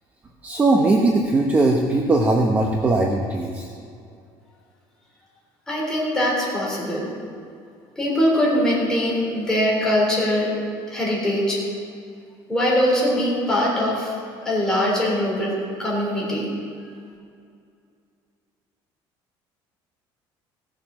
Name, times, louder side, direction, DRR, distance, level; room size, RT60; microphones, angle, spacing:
voice 1, 0.4-3.7, right 2 dB, 15° right, 1 dB, 0.8 m, -19 dB
voice 2, 5.7-7.1 8.0-10.5 10.9-11.6 12.5-14.1 14.4-16.5, equal, 5° left, -5 dB, 3.5 m, -22 dB
17.0 x 7.2 x 6.2 m, 2.4 s
cardioid pair, 170°, 9 cm